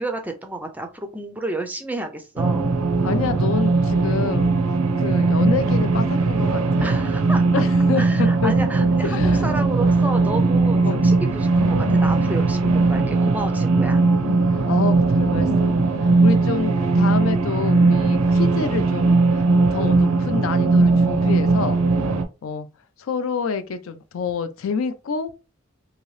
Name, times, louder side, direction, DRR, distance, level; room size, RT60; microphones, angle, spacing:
voice 1, 0.0-2.6 6.8-7.4 8.0-14.0, right 2 dB, 5° right, 0.4 m, -31 dB
sound 1, 2.4-22.2, right 3 dB, 85° right, 0.5 m, -19 dB
voice 2, 3.0-4.6 4.9-7.0 7.5-8.5 9.0-9.5 10.9-11.1 14.7-21.8 22.4-22.7 23.0-25.3, left 6 dB, 75° left, 0.4 m, -28 dB
2.9 x 2.8 x 3.1 m
head